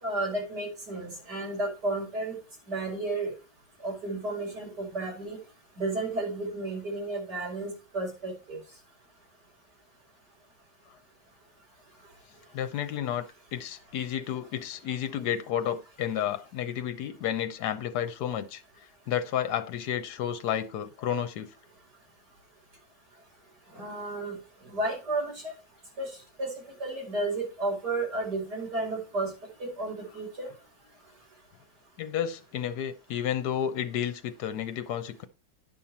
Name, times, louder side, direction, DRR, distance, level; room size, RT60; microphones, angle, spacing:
voice 1, 0.0-2.4 2.7-3.3 3.8-5.4 5.8-8.6 23.7-24.4 24.6-25.5 26.0-26.1 26.4-26.5 26.8-29.3 29.6-30.5, right 2 dB, 65° right, 5.3 m, -32 dB
voice 2, 12.5-18.6 19.1-21.5 32.0-35.2, left 9 dB, 75° left, 1.3 m, -31 dB
10.0 x 5.6 x 4.3 m
omnidirectional pair, 1.9 m